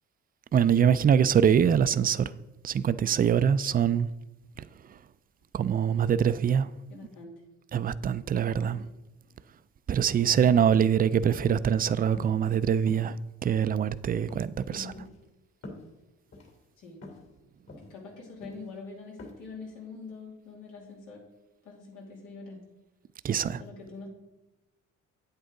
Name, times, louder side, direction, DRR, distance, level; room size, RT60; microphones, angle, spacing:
voice 1, 0.5-2.3 2.6-4.1 5.5-6.7 7.7-8.8 9.9-13.1 13.4-14.9 23.2-23.6, right 8 dB, 30° right, 0.4 m, -24 dB
voice 2, 6.9-7.3 8.3-8.9 10.4-10.6 14.7-15.0 16.8-17.0 17.8-21.2 21.6-22.6 23.6-24.1, left 4 dB, 90° left, 2.7 m, -44 dB
sound 1, 10.0-10.3 10.7-10.9 11.4-11.7 12.1-12.6 12.9-13.1 13.6-14.0 14.3-14.5 14.9-15.2 15.6-15.9 16.3-16.5 17.0-17.3 17.7-17.9 18.4-18.7 19.2-19.3, left 2 dB, 55° left, 2.7 m, -44 dB
8.9 x 8.0 x 3.8 m
cardioid pair, 90°, 30 cm